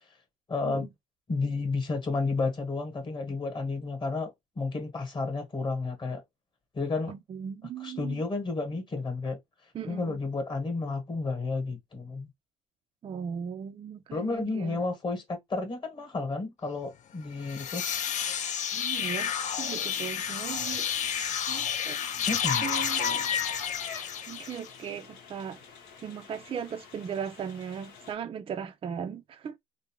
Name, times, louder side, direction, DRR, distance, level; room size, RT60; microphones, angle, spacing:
voice 1, 0.5-0.9 1.3-6.2 6.7-7.1 7.8-9.4 9.9-12.3 14.1-17.8 22.2-22.7, left 3 dB, 25° left, 1.0 m, -31 dB
voice 2, 7.1-8.2 9.7-10.2 13.0-14.8 18.7-22.0 22.6-23.3 24.3-25.6 26.0-29.6, right 7 dB, 30° right, 0.3 m, -38 dB
sound 1, 17.3-24.8, left 8 dB, 45° left, 0.4 m, -31 dB
sound 2, 22.4-28.1, left 6 dB, 90° left, 0.9 m, -38 dB
2.5 x 2.0 x 2.9 m
cardioid pair, 110°, 17 cm